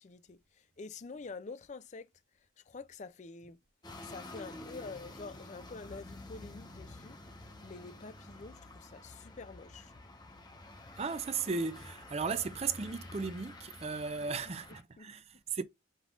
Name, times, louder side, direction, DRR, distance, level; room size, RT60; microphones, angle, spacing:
voice 1, 0.0-2.1 2.7-3.6 4.0-7.2 7.6-9.9 15.0-15.1, left 4 dB, 35° left, 0.4 m, -47 dB
sound 1, 3.8-14.8, left 2 dB, 20° left, 1.0 m, -50 dB
voice 2, 11.0-15.6, right 5 dB, 30° right, 0.5 m, -36 dB
5.3 x 3.7 x 2.4 m
head